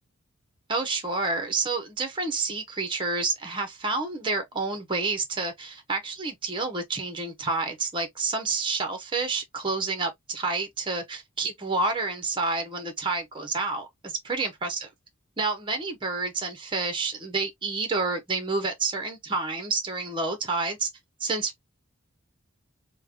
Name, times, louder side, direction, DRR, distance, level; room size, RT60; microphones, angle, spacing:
voice 1, 0.7-14.9 15.4-20.9 21.2-21.6, right 3 dB, 25° right, 0.8 m, -29 dB
3.3 x 2.2 x 3.3 m
head